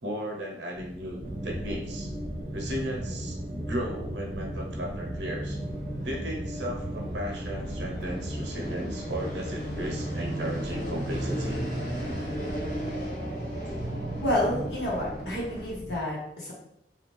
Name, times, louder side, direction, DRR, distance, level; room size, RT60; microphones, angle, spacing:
voice 1, 0.0-2.1 2.5-5.6 6.0-11.7, equal, 80° right, 1 dB, 0.8 m, -35 dB
sound 1, 0.7-15.9, equal, 5° right, 0.6 m, -41 dB
sound 2, 1.2-14.7, right 1 dB, 50° right, 0.6 m, -36 dB
Fixed-wing aircraft airplane, 5.5-15.7, equal, 50° left, 0.8 m, -38 dB
voice 2, 14.2-16.5, left 1 dB, 75° left, -5 dB, 1.1 m, -29 dB
2.8 x 2.3 x 3.1 m, 0.74 s
head